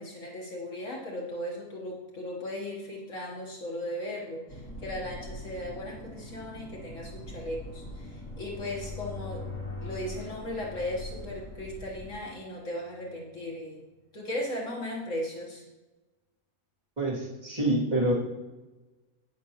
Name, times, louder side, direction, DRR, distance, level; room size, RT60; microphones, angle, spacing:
voice 1, 0.0-9.5 9.8-13.9 14.1-15.6, left 1 dB, 60° left, -3 dB, 1.8 m, -37 dB
sound 1, 2.6-13.4, left 3 dB, 20° left, 2.4 m, -46 dB
sound 2, 4.5-12.1, equal, 90° left, 3.1 m, -44 dB
voice 2, 17.0-18.1, right 1 dB, 25° right, -7 dB, 2.9 m, -26 dB
15.5 x 6.0 x 3.1 m, 1.2 s
omnidirectional pair, 1.6 m